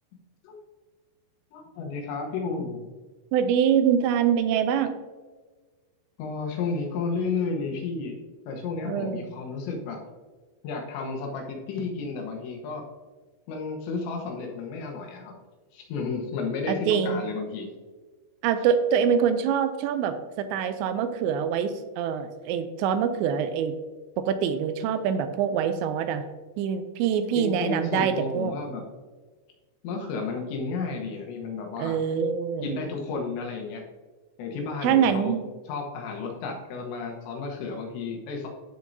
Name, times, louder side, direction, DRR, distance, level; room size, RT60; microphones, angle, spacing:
voice 1, 1.5-2.8 6.2-10.0 10.6-12.8 13.5-15.3 15.7-17.7 27.4-28.8 29.8-32.0 32.6-33.8 34.4-35.4 35.7-38.5, left 4 dB, 80° left, 1 dB, 3.3 m, -32 dB
voice 2, 3.3-4.9 8.9-9.3 16.7-17.3 18.4-23.7 24.2-26.2 26.6-28.5 31.8-32.7 34.8-35.5, right 8 dB, 85° right, 10 dB, 2.7 m, -25 dB
13.0 x 4.6 x 2.7 m, 1.3 s
omnidirectional pair, 5.1 m